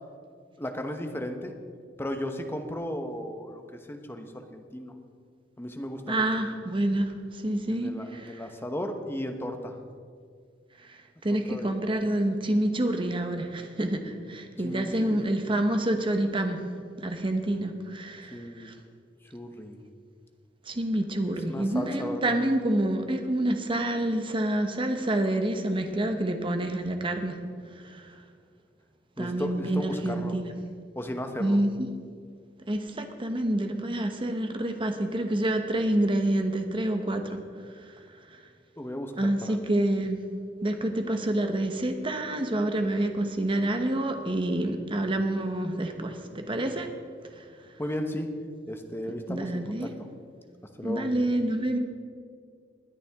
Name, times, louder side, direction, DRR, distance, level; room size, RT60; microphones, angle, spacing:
voice 1, 0.6-1.5 2.0-4.9 5.6-6.2 7.7-9.7 11.5-11.8 14.6-15.2 18.3-18.7 19.3-19.8 21.5-22.3 29.2-30.3 30.9-31.6 38.8-39.6 47.8-48.3 48.7-49.9 50.8-51.1, left 1 dB, 15° left, 5 dB, 1.0 m, -35 dB
voice 2, 6.1-8.4 10.8-16.6 17.0-18.7 20.7-27.4 27.8-28.1 29.2-30.5 31.4-31.9 32.7-37.4 38.3-38.4 39.2-40.2 40.6-46.9 47.3-47.4 49.3-49.9 50.8-51.8, right 1 dB, 30° right, 6 dB, 1.0 m, -28 dB
20.5 x 10.0 x 3.6 m, 2.1 s
head